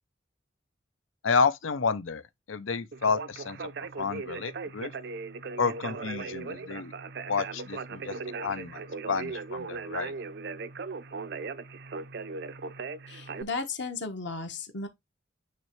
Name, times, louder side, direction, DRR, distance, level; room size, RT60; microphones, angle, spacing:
voice 1, 1.2-2.2 2.5-3.6 4.0-4.9 5.6-6.9 7.3-8.1 8.4-8.8 9.1-10.1, left 5 dB, 75° left, 0.7 m, -29 dB
Conversation, 2.9-13.4, right 4 dB, 55° right, 0.5 m, -38 dB
voice 2, 13.1-14.9, left 4 dB, 60° left, 1.4 m, -35 dB
9.3 x 3.2 x 3.1 m
head